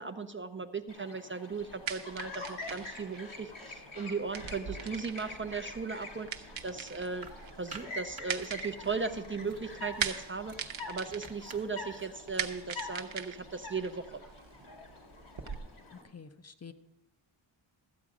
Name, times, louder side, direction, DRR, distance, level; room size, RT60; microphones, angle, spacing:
voice 1, 0.0-7.3 7.6-10.6 10.9-14.2, right 4 dB, 25° right, 8 dB, 0.5 m, -37 dB
Chirp tweet, 0.9-16.0, left 2 dB, 90° left, 2.3 m, -46 dB
sound 1, 1.5-15.6, right 7 dB, 80° right, 0.9 m, -42 dB
sound 2, 7.0-8.7 9.4-12.1, right 4 dB, 45° right, 1.1 m, -51 dB
voice 2, 15.9-16.7, left 6 dB, 35° left, 9 dB, 0.5 m, -49 dB
13.5 x 8.3 x 4.8 m, 1.0 s
wide cardioid pair, 120°, 46 cm